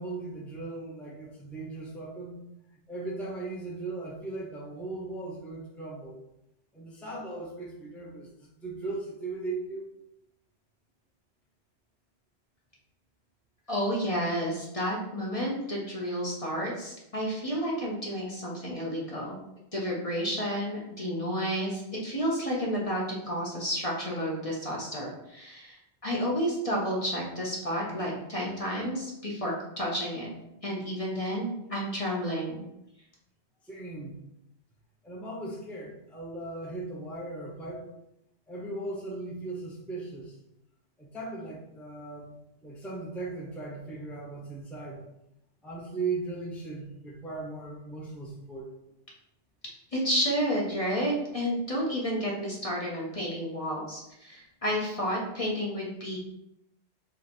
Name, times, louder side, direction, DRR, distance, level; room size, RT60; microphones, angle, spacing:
voice 1, 0.0-2.4 2.9-6.1 6.7-9.9 33.6-34.2 35.0-37.9 38.5-40.4 41.0-42.4 42.6-45.0 45.6-48.7, right 3 dB, ahead, -4 dB, 0.7 m, -38 dB
voice 2, 13.7-19.4 19.7-25.8 26.0-30.3 30.6-32.6 49.9-56.2, equal, 35° left, -4 dB, 0.9 m, -31 dB
3.8 x 2.9 x 4.4 m, 0.85 s
omnidirectional pair, 1.2 m